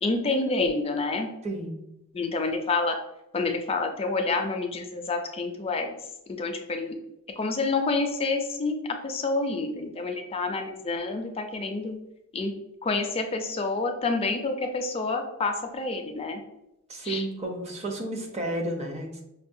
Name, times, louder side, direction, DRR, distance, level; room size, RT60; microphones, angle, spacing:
voice 1, 0.0-1.3 2.1-3.0 3.3-5.9 6.4-7.0 7.4-12.0 12.3-12.5 12.8-16.4 17.0-17.3, left 3 dB, 25° left, 4 dB, 0.4 m, -28 dB
voice 2, 1.4-1.8 16.9-19.2, right 1 dB, 30° right, 2 dB, 0.6 m, -32 dB
5.4 x 2.2 x 2.6 m, 0.86 s
head